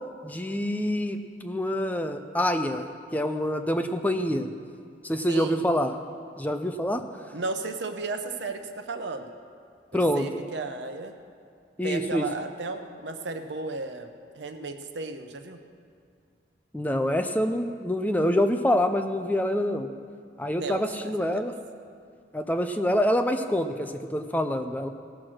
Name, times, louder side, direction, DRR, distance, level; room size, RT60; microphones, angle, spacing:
voice 1, 0.2-2.9 3.1-4.5 5.0-5.9 6.4-7.0 9.9-10.3 11.8-12.2 16.7-19.9 20.4-21.5 22.3-24.9, equal, 10° left, 7 dB, 0.4 m, -26 dB
voice 2, 5.3-5.7 7.3-9.3 9.9-11.1 11.8-15.6 20.6-21.5, right 3 dB, 85° right, 6 dB, 0.9 m, -34 dB
17.0 x 6.1 x 6.3 m, 2.3 s
head